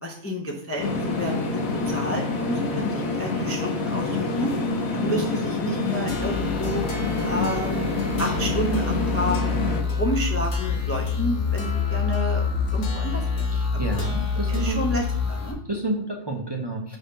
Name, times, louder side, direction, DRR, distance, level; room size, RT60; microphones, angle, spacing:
voice 1, 0.0-0.9 1.2-1.6 1.9-4.5 4.9-6.8 7.2-7.8 8.2-9.4 9.9-13.5 13.7-14.1 14.5-15.6, equal, 15° left, 1 dB, 0.5 m, -30 dB
sound 1, 0.8-9.8, left 3 dB, 80° left, 1.4 m, -27 dB
sound 2, 6.1-15.5, left 5 dB, 60° left, 1.4 m, -27 dB
voice 2, 13.5-14.8 15.7-17.0, right 2 dB, 25° right, 0 dB, 0.7 m, -30 dB
5.5 x 3.6 x 5.4 m, 0.70 s
omnidirectional pair, 1.4 m